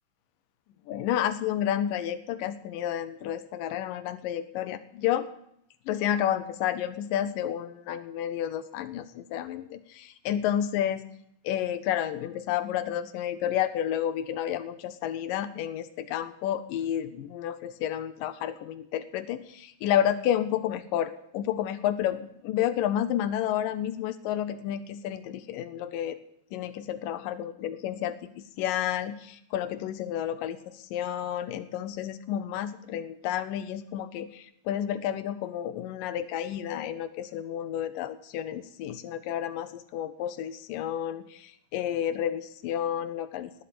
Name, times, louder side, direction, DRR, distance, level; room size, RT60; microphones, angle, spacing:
voice 1, 0.9-5.3 5.9-11.0 11.4-26.2 26.5-43.6, left 10 dB, 80° left, 11 dB, 2.0 m, -31 dB
19.5 x 8.4 x 7.7 m, 0.74 s
omnidirectional pair, 4.8 m